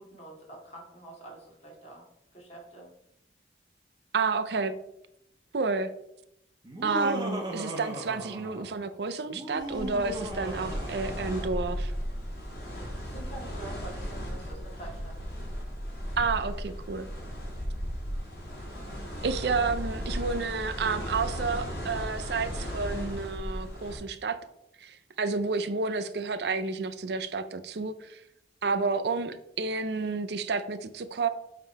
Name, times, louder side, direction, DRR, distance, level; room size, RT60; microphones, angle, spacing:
voice 1, 0.0-2.1 2.3-2.9 12.8-15.2, right 2 dB, 40° left, -3 dB, 2.4 m, -46 dB
voice 2, 4.1-4.7 5.5-5.9 6.8-11.9 16.2-17.1 19.2-24.4 24.8-28.2 28.6-31.3, right 4 dB, 65° right, 11 dB, 0.5 m, -30 dB
Laughter, 6.6-8.8 9.3-11.6, right 1 dB, 25° right, 1.2 m, -37 dB
sound 1, 9.6-24.0, equal, 55° left, 2.7 m, -36 dB
7.6 x 3.7 x 4.6 m, 0.79 s
head